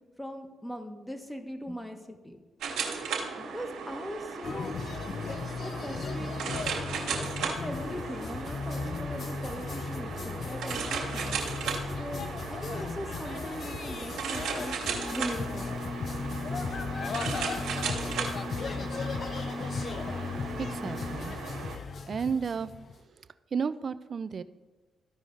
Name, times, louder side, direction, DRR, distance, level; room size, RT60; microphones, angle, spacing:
voice 1, 0.2-2.4 3.4-4.7 5.3-6.6 7.4-11.4 12.0-14.8 15.1-15.8, equal, 10° left, 5 dB, 1.3 m, -40 dB
sound 1, 2.6-21.8, right 5 dB, 80° right, 1.4 m, -36 dB
sound 2, 4.4-23.0, left 5 dB, 55° left, 0.5 m, -36 dB
sound 3, 14.9-21.1, left 2 dB, 30° left, 2.4 m, -41 dB
voice 2, 20.6-21.3 22.1-22.7 23.5-24.4, right 6 dB, 55° right, 13 dB, 0.4 m, -32 dB
14.0 x 4.9 x 3.9 m, 1.3 s
supercardioid pair, 55°, 0 cm